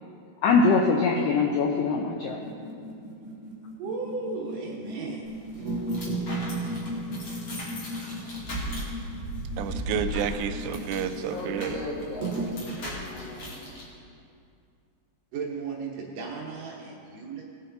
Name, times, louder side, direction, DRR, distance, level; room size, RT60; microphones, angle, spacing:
voice 1, 0.4-2.5, left 4 dB, 80° left, 1 dB, 1.9 m, -22 dB
sound 1, 2.3-12.4, right 1 dB, 45° right, 1.3 m, -36 dB
voice 2, 3.8-5.3 15.3-17.4, right 4 dB, 65° right, -2 dB, 2.4 m, -35 dB
sound 2, 5.3-13.8, right 1 dB, 45° left, 2.0 m, -38 dB
voice 3, 9.6-11.8, right 7 dB, 90° right, 9 dB, 2.7 m, -30 dB
voice 4, 11.3-13.6, left 2 dB, 65° left, -2 dB, 2.6 m, -38 dB
19.5 x 7.0 x 3.9 m, 2.4 s
omnidirectional pair, 4.8 m